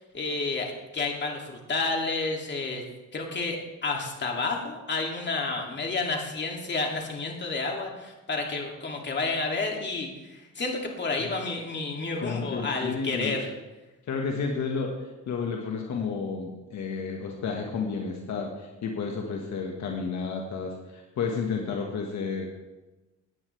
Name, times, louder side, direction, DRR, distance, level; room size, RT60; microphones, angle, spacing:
voice 1, 0.1-2.8 3.1-13.5, left 3 dB, 35° left, 0 dB, 2.7 m, -30 dB
voice 2, 12.2-13.3 14.1-15.0 15.3-22.5, left 5 dB, 65° left, 1 dB, 1.6 m, -31 dB
17.5 x 9.8 x 3.4 m, 1.1 s
cardioid pair, 90°, 30 cm